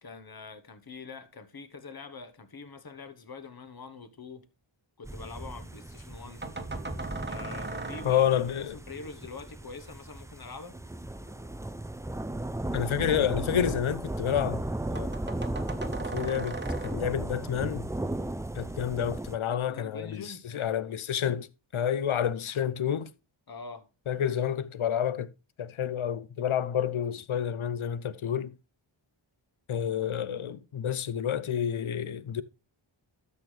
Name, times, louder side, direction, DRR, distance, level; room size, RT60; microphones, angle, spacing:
voice 1, 0.0-4.4 5.0-6.5 7.3-8.2 8.9-10.8 19.5-20.5 23.5-23.9, left 4 dB, 50° left, 1.1 m, -44 dB
sound 1, 5.0-19.4, right 1 dB, 5° right, 0.4 m, -36 dB
sound 2, 6.4-8.7 10.7-14.0 14.3-14.4 14.7-14.8 15.0-17.4, right 3 dB, 20° right, 1.1 m, -40 dB
voice 2, 8.0-8.8 12.7-14.6 14.9-15.1 16.1-16.6 16.8-17.9 18.5-21.5 21.7-23.1 24.1-25.3 25.6-28.5 29.7-32.4, left 9 dB, 80° left, 0.8 m, -29 dB
13.0 x 6.3 x 3.3 m
wide cardioid pair, 80°, 48 cm